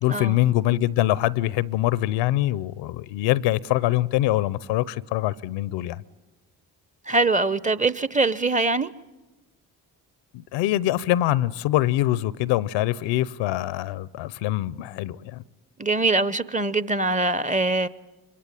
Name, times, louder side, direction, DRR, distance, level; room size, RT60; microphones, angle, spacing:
voice 1, 0.0-6.0 10.3-15.4, left 15 dB, 70° left, 0.8 m, -24 dB
voice 2, 7.1-8.9 15.8-17.9, right 3 dB, 15° right, 0.9 m, -23 dB
25.5 x 22.5 x 9.0 m
hypercardioid pair, 45°, 46 cm